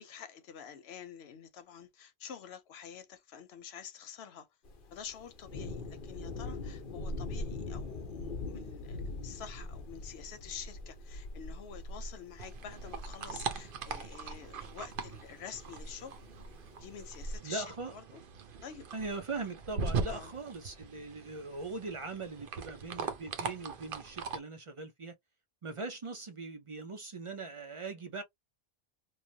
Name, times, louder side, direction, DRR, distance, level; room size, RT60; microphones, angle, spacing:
voice 1, 0.0-4.5 4.9-16.2 16.8-18.2 18.6-18.9 20.1-20.3, left 8 dB, 85° left, 0.9 m, -48 dB
Thunder, 4.6-17.4, left 2 dB, 60° left, 0.9 m, -43 dB
sound 1, 12.4-24.4, right 5 dB, 65° right, 0.8 m, -41 dB
voice 2, 17.4-17.9 18.9-25.1 25.6-28.2, right 3 dB, 45° right, 0.4 m, -40 dB
3.1 x 2.1 x 2.7 m
omnidirectional pair, 1.1 m